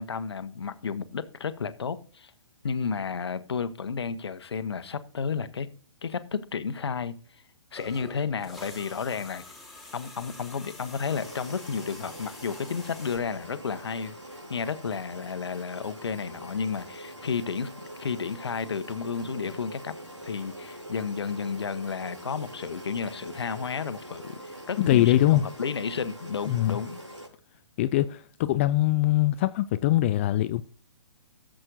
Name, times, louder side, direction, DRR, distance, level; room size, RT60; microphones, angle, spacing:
voice 1, 0.0-2.3 2.6-5.7 6.0-7.1 7.7-9.4 9.9-14.2 14.5-17.7 18.0-19.9 20.2-27.0, left 6 dB, 65° left, 1.0 m, -32 dB
sound 1, 7.7-13.2, left 2 dB, ahead, 2.7 m, -46 dB
sound 2, 11.1-27.3, right 1 dB, 85° right, 4.2 m, -43 dB
voice 2, 24.9-25.5 26.5-26.8 27.8-30.6, left 14 dB, 25° left, 0.4 m, -22 dB
16.5 x 7.6 x 2.6 m
figure-of-eight pair, 125°, 15 cm